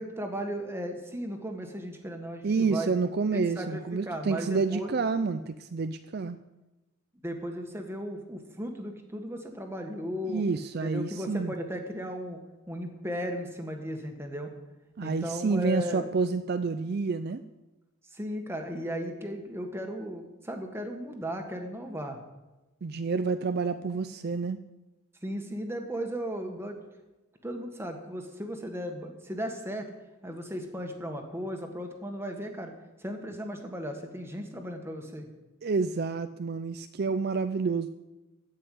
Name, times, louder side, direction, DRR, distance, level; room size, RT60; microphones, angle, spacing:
voice 1, 0.0-2.9 3.3-4.9 7.2-10.4 10.8-12.4 12.7-14.5 15.0-16.1 18.1-22.2 25.2-26.8 27.4-29.9 30.2-32.7 33.0-35.3, equal, 10° right, 4 dB, 1.5 m, -36 dB
voice 2, 2.4-6.4 10.3-11.5 15.0-17.4 22.8-24.6 35.6-37.9, right 4 dB, 50° right, 10 dB, 0.4 m, -29 dB
16.0 x 5.7 x 9.2 m, 1.1 s
head